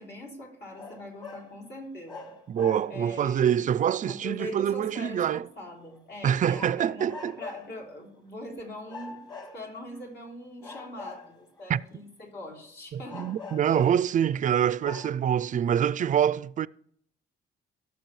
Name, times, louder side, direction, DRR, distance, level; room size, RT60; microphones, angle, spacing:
voice 1, 0.0-2.3 2.9-3.6 4.1-7.1 7.4-9.2 9.5-13.3 13.6-13.8, left 1 dB, 60° left, 3.5 m, -42 dB
sound 1, 0.7-1.5 2.1-3.2 6.5-7.8 8.9-10.0 10.6-11.6 13.1-14.1 14.5-14.6 14.8-15.1, left 4 dB, 20° left, 1.7 m, -43 dB
voice 2, 2.5-5.4 6.2-7.4 11.7-11.8 12.9-16.7, right 9 dB, 40° right, 0.4 m, -25 dB
17.5 x 6.9 x 3.2 m
cardioid pair, 90°, 20 cm